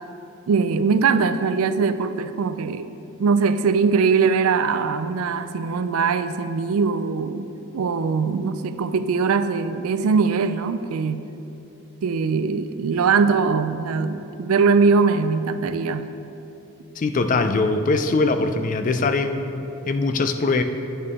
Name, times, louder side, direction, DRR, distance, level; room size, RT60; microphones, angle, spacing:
voice 1, 0.5-2.9 3.2-7.5 7.7-11.3 12.0-16.1, right 5 dB, 80° right, 11 dB, 0.4 m, -21 dB
voice 2, 17.0-20.6, left 3 dB, 40° left, 8 dB, 0.4 m, -22 dB
8.7 x 8.3 x 3.6 m, 2.9 s
head